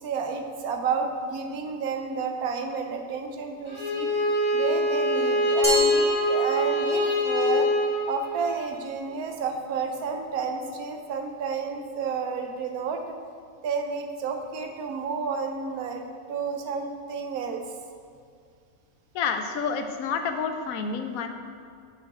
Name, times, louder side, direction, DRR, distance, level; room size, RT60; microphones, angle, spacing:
voice 1, 0.0-4.1 4.5-7.7 8.1-13.0 13.6-17.6, right 5 dB, 85° right, 4 dB, 1.2 m, -31 dB
Bowed string instrument, 3.7-8.6, left 1 dB, 15° left, 2.0 m, -24 dB
Glass, 5.6-7.1, right 2 dB, 5° right, 1.0 m, -31 dB
voice 2, 19.1-21.3, left 5 dB, 75° left, 6 dB, 1.0 m, -29 dB
6.8 x 5.6 x 4.1 m, 2.2 s
omnidirectional pair, 1.5 m